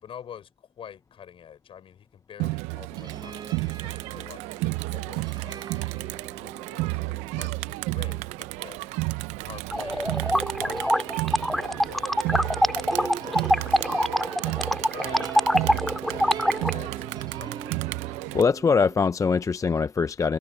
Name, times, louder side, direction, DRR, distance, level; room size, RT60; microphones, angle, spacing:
voice 1, 0.0-5.6 6.3-8.8 9.4-13.8 14.2-17.8 18.3-18.4, left 9 dB, 50° left, 5.6 m, -47 dB
Crowd, 2.4-18.4, right 22 dB, 80° right, 0.7 m, -32 dB
sound 1, 2.9-19.0, right 6 dB, 40° right, 2.4 m, -42 dB
sound 2, 9.7-16.7, equal, ahead, 2.0 m, -24 dB
voice 2, 18.3-20.4, left 5 dB, 25° left, 0.6 m, -22 dB
supercardioid pair, 70°, 12 cm